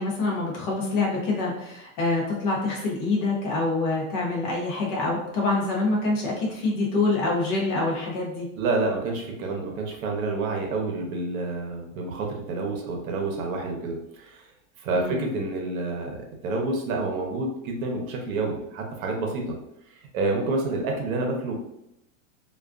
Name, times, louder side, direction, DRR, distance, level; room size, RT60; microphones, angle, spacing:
voice 1, 0.0-8.5 14.9-15.2, left 3 dB, 30° left, -3 dB, 0.5 m, -26 dB
voice 2, 8.6-14.5 14.8-19.6 19.9-21.5, right 3 dB, 85° right, 1 dB, 0.8 m, -28 dB
2.3 x 2.3 x 2.3 m, 0.83 s
supercardioid pair, 175°, 41 cm